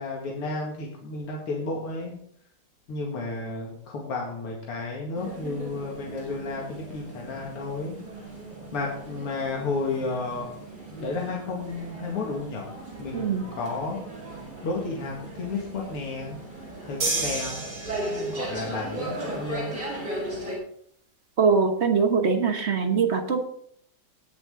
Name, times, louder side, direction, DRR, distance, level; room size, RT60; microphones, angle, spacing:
voice 1, 0.0-2.2 2.9-8.0 8.7-10.5 10.9-12.7 13.0-14.0 14.6-16.4 16.8-17.5 18.1-19.7, left 3 dB, 90° left, -1 dB, 2.9 m, -32 dB
sound 1, 5.1-20.6, right 2 dB, 20° right, 5.4 m, -37 dB
voice 2, 13.1-13.5 21.4-23.4, right 5 dB, 45° right, 6 dB, 0.9 m, -22 dB
sound 2, 17.0-18.6, right 3 dB, 70° right, 4.5 m, -30 dB
19.0 x 7.2 x 3.7 m, 0.65 s
omnidirectional pair, 2.4 m